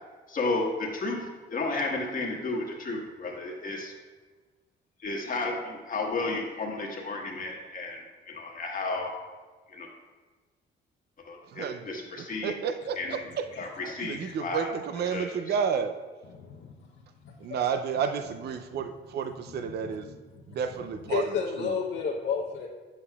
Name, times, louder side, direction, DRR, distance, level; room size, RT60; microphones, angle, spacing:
voice 1, 0.3-3.9 5.0-9.1 9.7-9.9 11.3-12.5 13.0-13.2 13.6-14.7 15.1-15.2, left 3 dB, 45° left, -1 dB, 1.4 m, -32 dB
voice 2, 11.5-13.4 14.0-15.9 17.4-20.1 20.5-21.3 21.6-21.7, right 7 dB, 55° right, 8 dB, 0.5 m, -31 dB
voice 3, 13.5-13.9 14.2-14.3 16.3-16.9 17.2-17.6 19.5-20.2 21.1-22.7, left 6 dB, 65° left, -3 dB, 0.8 m, -33 dB
8.2 x 7.5 x 2.3 m, 1.4 s
cardioid pair, 90°, 20 cm